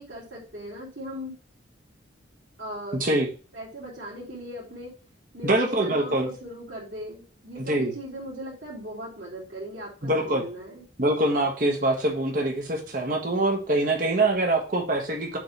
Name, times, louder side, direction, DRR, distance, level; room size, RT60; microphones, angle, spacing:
voice 1, 0.0-1.3 2.6-3.0 3.5-4.9 5.3-10.8, equal, 70° right, -7 dB, 3.3 m, -38 dB
voice 2, 5.4-6.3 7.6-7.9 10.0-10.4 11.0-15.4, right 2 dB, 45° right, 2 dB, 1.3 m, -24 dB
7.6 x 3.6 x 5.4 m, 0.37 s
head